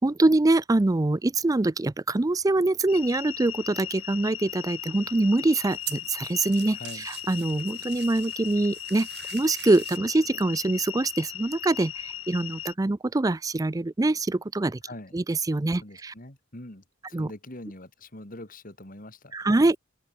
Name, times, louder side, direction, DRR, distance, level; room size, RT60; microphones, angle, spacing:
voice 1, 0.0-14.8 15.1-16.1 17.1-17.3 19.3-19.8, right 2 dB, 15° right, 0.4 m, -24 dB
sound 1, 2.9-12.7, left 12 dB, 90° left, 1.6 m, -38 dB
sound 2, 4.9-10.0, right 14 dB, 55° right, 3.8 m, -43 dB
voice 2, 6.7-7.1 14.9-15.2 15.7-19.8, left 1 dB, 45° left, 3.3 m, -43 dB
open air
head